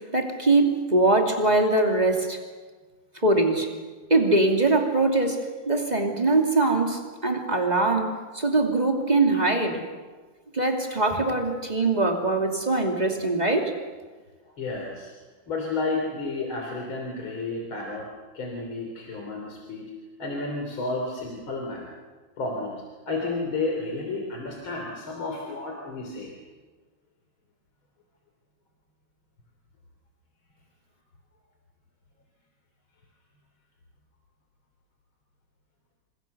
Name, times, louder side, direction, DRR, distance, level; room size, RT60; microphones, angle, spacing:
voice 1, 0.0-2.4 3.2-3.7 4.1-9.8 10.5-13.7, right 2 dB, 20° right, 2 dB, 2.7 m, -22 dB
voice 2, 14.6-15.1 15.5-18.1 18.3-19.9 20.2-21.9 22.4-26.4, left 3 dB, 85° left, 1 dB, 4.1 m, -31 dB
28.0 x 26.0 x 6.7 m, 1.4 s
omnidirectional pair, 2.2 m